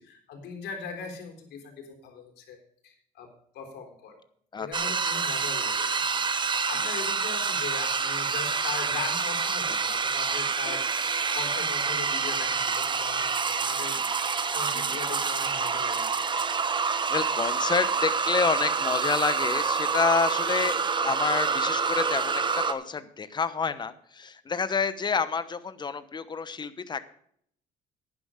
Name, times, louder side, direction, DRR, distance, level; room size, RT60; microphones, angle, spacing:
voice 1, 0.1-2.6 2.8-3.3 3.5-4.2 4.6-6.2 6.5-14.0 14.5-16.5, left 5 dB, 75° left, 4 dB, 3.7 m, -40 dB
voice 2, 4.5-5.2 14.7-15.0 17.1-20.8 21.0-27.1, left 5 dB, 25° left, 13 dB, 1.0 m, -29 dB
sound 1, 4.7-22.7, right 5 dB, 30° right, 1.0 m, -27 dB
11.0 x 9.7 x 5.0 m, 0.65 s
cardioid pair, 110°, 17 cm